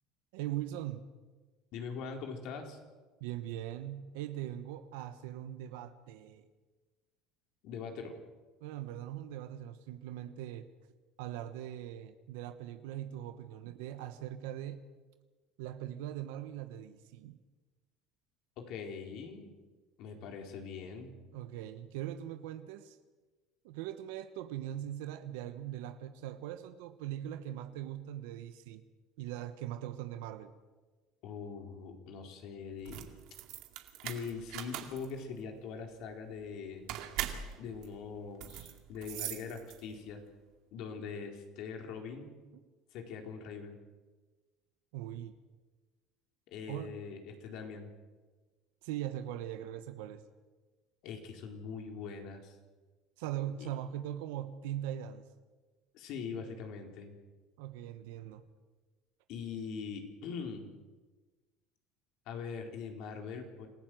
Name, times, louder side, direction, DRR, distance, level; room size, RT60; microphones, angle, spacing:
voice 1, 0.3-1.1 3.2-6.5 8.6-10.7 11.2-14.8 15.6-17.4 21.3-23.0 23.6-28.8 29.2-30.5 44.9-45.4 46.7-47.0 48.8-50.2 53.2-55.2 57.6-58.4, right 12 dB, 85° right, 9 dB, 1.2 m, -41 dB
voice 2, 1.7-2.8 7.6-8.2 18.6-19.5 20.0-21.1 31.2-33.1 34.0-36.9 37.6-40.2 40.7-42.3 42.9-43.8 46.5-47.9 51.0-52.6 53.6-53.7 55.9-57.1 59.3-60.7 62.3-63.7, left 5 dB, 65° left, 3 dB, 4.3 m, -42 dB
sound 1, 32.7-40.1, right 12 dB, 70° right, 2.3 m, -42 dB
27.0 x 15.0 x 7.8 m, 1.3 s
supercardioid pair, 110°, 0 cm